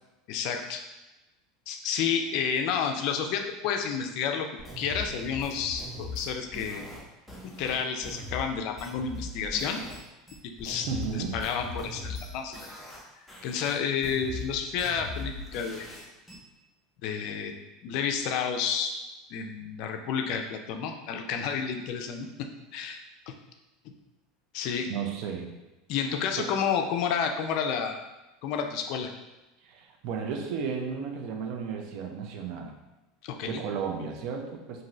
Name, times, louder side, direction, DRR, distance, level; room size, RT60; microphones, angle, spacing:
voice 1, 0.3-0.8 1.7-4.5 4.8-6.8 7.4-9.8 10.6-12.6 13.4-16.0 17.0-17.5 17.8-19.0 19.3-22.5 22.7-23.0 23.3-23.4 24.5-24.9 25.9-28.0 28.4-29.1 33.2-33.6, left 7 dB, 60° left, 4 dB, 0.4 m, -30 dB
sound 1, 4.6-10.0 10.3-13.0 13.3-16.4, left 2 dB, 5° left, 0.8 m, -40 dB
voice 2, 10.9-11.4 24.9-25.6 26.4-26.6 29.6-32.8 33.4-34.8, right 6 dB, 60° right, 3 dB, 0.5 m, -34 dB
2.6 x 2.5 x 3.0 m, 1.0 s
hypercardioid pair, 100°, 0 cm